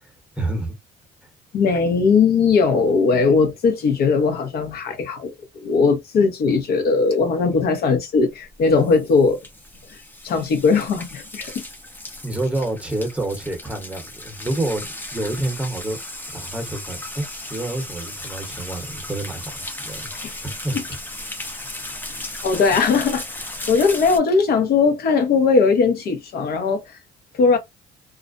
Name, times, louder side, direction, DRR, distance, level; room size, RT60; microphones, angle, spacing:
voice 1, 0.4-0.7 12.2-16.0 16.3-20.1 20.4-20.8, right 2 dB, 5° right, 0.9 m, -28 dB
voice 2, 1.5-9.4 9.9-10.0 10.2-11.6 20.2-20.4 20.7-20.8 22.4-23.2 23.7-27.0 27.3-27.6, left 4 dB, 65° left, 0.8 m, -19 dB
sound 1, 8.5-24.2, left 1 dB, 10° left, 0.6 m, -35 dB
2.4 x 2.0 x 2.5 m
cardioid pair, 110°, 17 cm